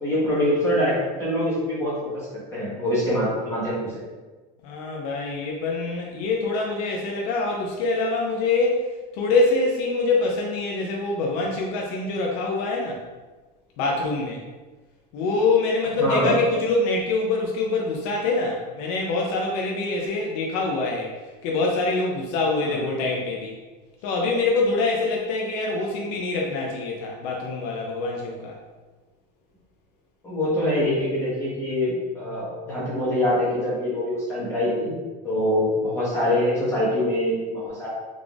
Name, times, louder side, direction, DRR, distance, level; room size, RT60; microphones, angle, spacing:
voice 1, 0.0-4.0 16.0-16.4 22.6-22.8 30.2-34.9 35.2-37.9, left 1 dB, 15° left, -8 dB, 1.1 m, -24 dB
voice 2, 4.6-8.8 9.1-13.0 13.8-14.4 15.1-21.1 21.4-23.5 24.0-28.6, left 3 dB, 50° left, -1 dB, 0.5 m, -25 dB
3.5 x 3.4 x 2.4 m, 1.3 s
cardioid pair, 170°, 21 cm